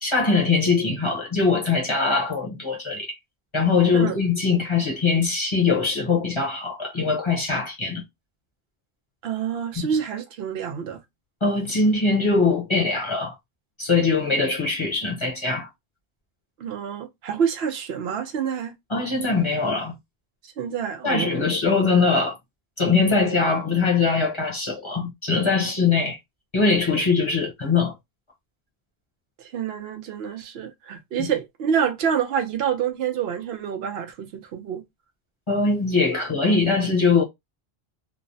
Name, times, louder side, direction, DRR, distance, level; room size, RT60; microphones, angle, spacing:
voice 1, 0.0-3.1 3.5-8.0 9.8-9.9 11.4-13.4 13.8-15.7 18.9-19.9 21.0-22.4 22.8-26.2 26.5-27.9 31.2-31.3 35.5-37.2, left 4 dB, 30° left, 0.7 m, -22 dB
voice 2, 9.2-11.0 16.6-18.7 20.6-21.4 29.4-34.8 36.1-36.2, right 7 dB, 80° right, 0.9 m, -27 dB
3.1 x 2.0 x 2.6 m
omnidirectional pair, 1.0 m